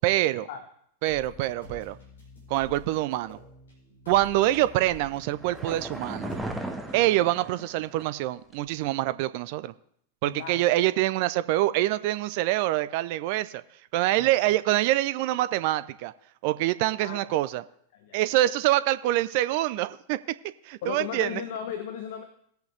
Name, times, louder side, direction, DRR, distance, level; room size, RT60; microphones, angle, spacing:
voice 1, 0.0-0.5 1.0-2.0 2.5-3.4 4.1-6.3 6.9-9.7 10.2-13.6 13.9-16.1 16.4-17.6 18.1-20.2 20.7-21.4, right 15 dB, 45° right, 15 dB, 0.5 m, -25 dB
sound 1, 1.1-7.0, left 3 dB, 70° left, 4.7 m, -49 dB
sound 2, 4.5-8.2 8.5-8.6, right 1 dB, 5° right, 1.3 m, -37 dB
voice 2, 10.2-10.7 14.2-14.6 17.0-17.4 17.9-18.2 20.8-22.2, left 8 dB, 55° left, 9 dB, 1.0 m, -36 dB
18.5 x 8.1 x 3.3 m, 0.68 s
figure-of-eight pair, 90°, 0 cm